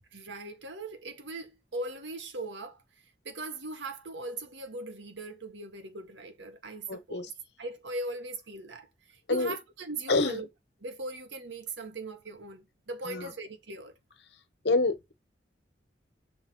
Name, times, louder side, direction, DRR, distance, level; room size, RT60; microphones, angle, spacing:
voice 1, 0.1-2.8 3.2-7.3 7.6-10.5 10.8-14.0, right 2 dB, 80° right, 1.4 m, -39 dB
voice 2, 6.9-7.3 9.3-9.5 10.1-10.4 13.1-13.3 14.6-15.1, left 3 dB, 65° left, 1.2 m, -27 dB
5.3 x 4.1 x 6.1 m
head